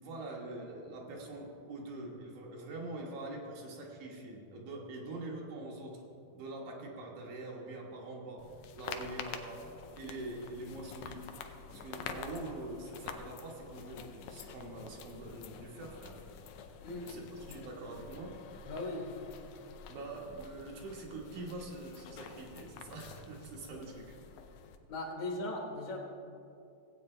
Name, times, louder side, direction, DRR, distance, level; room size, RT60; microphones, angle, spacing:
voice 1, 0.0-6.0 6.3-8.4 8.7-9.6 9.9-11.3 11.7-16.2 17.0-18.4 19.9-24.1, right 2 dB, 75° right, -2 dB, 2.9 m, -44 dB
sound 1, 8.4-24.8, left 6 dB, 90° left, 1.4 m, -48 dB
voice 2, 16.8-17.6 18.7-19.2 24.9-26.0, left 2 dB, 65° left, -1 dB, 2.7 m, -39 dB
17.0 x 8.5 x 3.3 m, 2.5 s
omnidirectional pair, 3.6 m